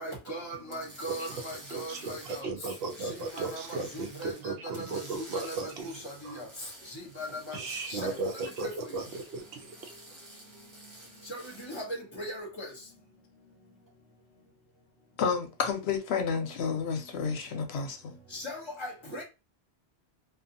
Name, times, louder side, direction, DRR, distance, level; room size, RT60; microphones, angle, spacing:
voice 1, 0.0-2.5 3.3-5.6 5.8-6.5 7.2-7.6 7.9-8.3 8.6-8.7 11.3-11.4 11.7-11.8 12.1-12.7 18.3-19.2, equal, 25° left, 0.9 m, -39 dB
sound 1, 0.7-4.4 4.7-11.8, right 1 dB, 35° right, 0.9 m, -50 dB
voice 2, 1.7-5.9 6.2-6.4 7.5-9.8, right 3 dB, 70° right, 0.8 m, -36 dB
sound 2, 6.8-7.3 8.1-8.6 9.3-10.9 12.0-12.4 13.9-14.1, left 2 dB, 15° right, 1.2 m, -60 dB
voice 3, 15.2-18.2, left 6 dB, 75° left, 0.8 m, -30 dB
2.5 x 2.3 x 2.6 m
omnidirectional pair, 1.1 m